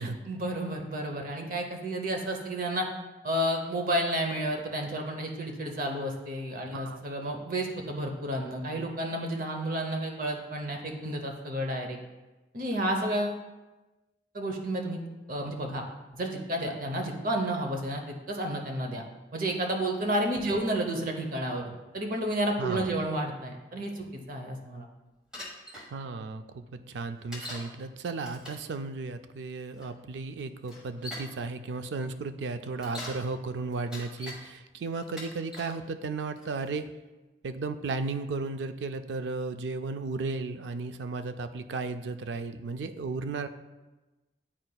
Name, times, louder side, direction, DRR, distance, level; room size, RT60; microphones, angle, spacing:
voice 1, 0.0-2.9 3.2-12.0 12.5-13.4 14.3-15.0 15.3-15.8 16.1-19.0 19.3-24.9, right 1 dB, 50° right, 2 dB, 0.8 m, -31 dB
voice 2, 22.6-22.9 25.9-36.9 37.4-43.5, right 3 dB, 80° right, 10 dB, 0.4 m, -34 dB
Bicycle, 25.3-25.9 27.3-27.7 28.2-28.7 29.8-29.9 30.7-31.3 32.6-33.2 33.7-34.4 35.0-35.8 36.4-36.8, left 1 dB, 5° right, 1.2 m, -42 dB
9.5 x 4.4 x 2.3 m, 1.1 s
head